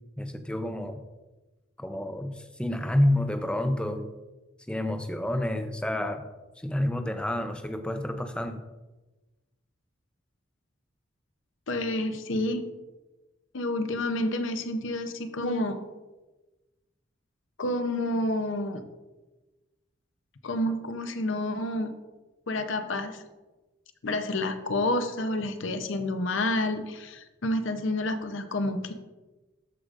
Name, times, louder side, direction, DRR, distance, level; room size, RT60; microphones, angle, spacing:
voice 1, 0.2-1.0 1.8-4.1 4.7-6.2 6.6-8.6, left 1 dB, 5° left, 7 dB, 0.4 m, -29 dB
voice 2, 11.7-12.6 13.5-15.9 17.6-18.8 20.4-21.9 22.5-23.2 24.0-28.9, left 1 dB, 70° left, 9 dB, 0.7 m, -29 dB
12.5 x 4.8 x 2.5 m, 1.2 s
head